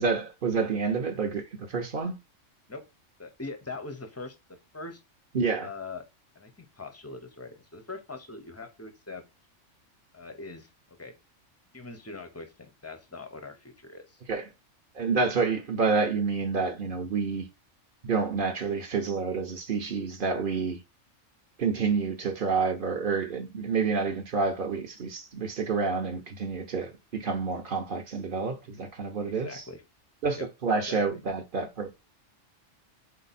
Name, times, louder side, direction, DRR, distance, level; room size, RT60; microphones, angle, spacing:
voice 1, 0.0-2.2 5.3-5.7 14.3-14.5 14.9-17.5 18.0-20.8 21.6-29.6 30.2-31.9, right 4 dB, 50° right, 0.8 m, -28 dB
voice 2, 3.2-5.0 5.6-6.1 6.4-9.2 10.1-10.7 11.0-11.1 11.7-14.2 29.3-29.8 30.4-30.5 30.9-31.2, left 3 dB, 20° left, 0.4 m, -42 dB
4.3 x 2.7 x 4.0 m
omnidirectional pair, 1.3 m